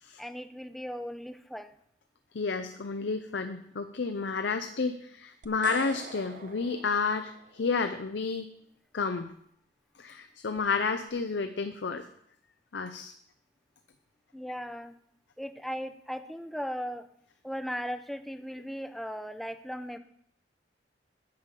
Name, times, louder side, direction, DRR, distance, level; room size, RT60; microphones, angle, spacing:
voice 1, 0.2-1.7 14.3-14.9 15.4-17.1 17.4-20.0, equal, ahead, 10 dB, 0.5 m, -37 dB
voice 2, 2.3-8.5 8.9-9.3 10.0-12.0 12.7-13.1, left 4 dB, 75° left, 8 dB, 0.6 m, -31 dB
sound 1, 5.4-7.7, right 4 dB, 45° right, 0.8 m, -45 dB
9.9 x 5.4 x 7.5 m, 0.70 s
head